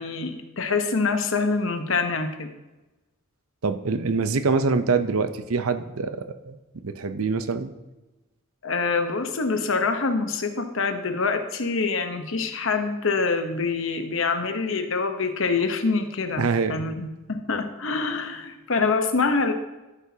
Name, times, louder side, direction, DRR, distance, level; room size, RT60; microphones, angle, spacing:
voice 1, 0.0-2.5 8.6-19.5, left 4 dB, 65° left, 7 dB, 1.0 m, -25 dB
voice 2, 3.6-6.2 6.4-6.6 6.8-7.7 16.4-16.8, right 4 dB, 85° right, 10 dB, 0.7 m, -24 dB
13.5 x 8.3 x 2.8 m, 1.1 s
head